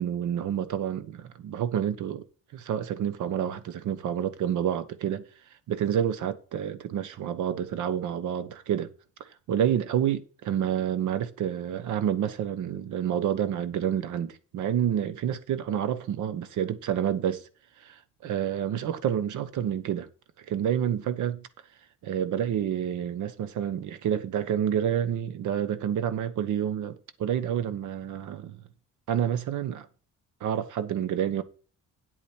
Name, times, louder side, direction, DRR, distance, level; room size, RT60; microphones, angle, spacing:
voice 1, 0.0-2.2 2.5-5.2 5.7-8.9 9.5-17.4 17.8-20.1 20.5-21.4 22.0-28.6 29.1-29.9 30.4-31.4, right 9 dB, 80° right, 1.2 m, -28 dB
9.4 x 8.6 x 4.5 m
cardioid pair, 90°, 30 cm